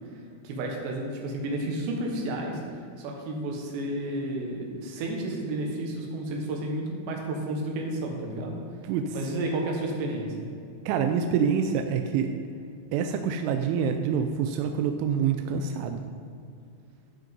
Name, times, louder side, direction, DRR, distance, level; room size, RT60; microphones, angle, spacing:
voice 1, 0.4-8.6 9.1-10.4, right 1 dB, 70° right, 1 dB, 3.2 m, -31 dB
voice 2, 10.9-12.3 12.9-16.0, right 7 dB, 85° right, 6 dB, 2.7 m, -26 dB
13.5 x 5.1 x 5.3 m, 2.4 s
omnidirectional pair, 6.0 m